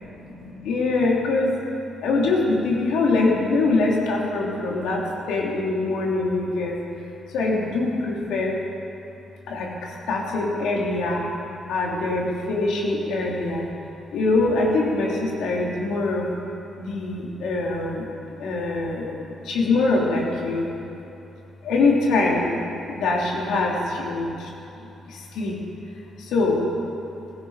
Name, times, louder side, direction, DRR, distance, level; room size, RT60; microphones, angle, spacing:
voice 1, 0.0-1.6 2.0-6.8 7.3-8.6 9.5-11.2 11.7-13.6 14.1-16.3 16.8-20.7 21.6-22.5 22.8-24.5 24.8-25.6 26.2-26.6, left 3 dB, 80° left, -2 dB, 3.5 m, -24 dB
17.0 x 16.5 x 5.1 m, 2.9 s
cardioid pair, 90°, 0 cm